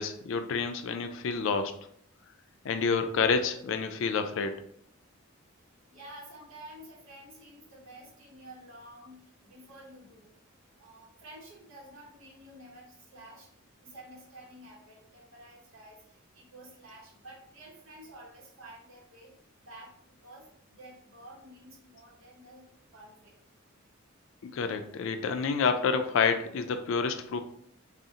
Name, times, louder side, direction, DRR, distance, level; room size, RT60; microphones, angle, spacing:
voice 1, 0.0-1.7 2.6-4.5 24.4-27.4, left 5 dB, 65° left, 8 dB, 0.3 m, -28 dB
voice 2, 5.9-10.3 10.8-13.5 13.8-19.4 19.6-23.3, right 1 dB, 75° right, -4 dB, 0.8 m, -51 dB
2.7 x 2.0 x 3.6 m, 0.67 s
head